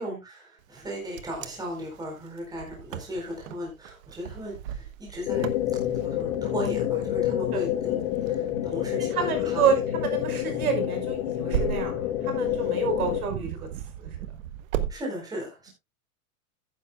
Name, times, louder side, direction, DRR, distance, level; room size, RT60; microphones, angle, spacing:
voice 1, 0.0-5.5 6.0-9.7 14.9-15.7, equal, 10° right, -1 dB, 4.2 m, -37 dB
Wind, 0.8-14.9, right 11 dB, 65° right, 1.2 m, -38 dB
sound 1, 5.3-13.2, left 12 dB, 60° left, 2.0 m, -28 dB
voice 2, 9.1-13.7 14.0-14.1, right 6 dB, 85° right, 5 dB, 5.4 m, -28 dB
14.5 x 9.9 x 2.3 m, 0.22 s
supercardioid pair, 160°, 43 cm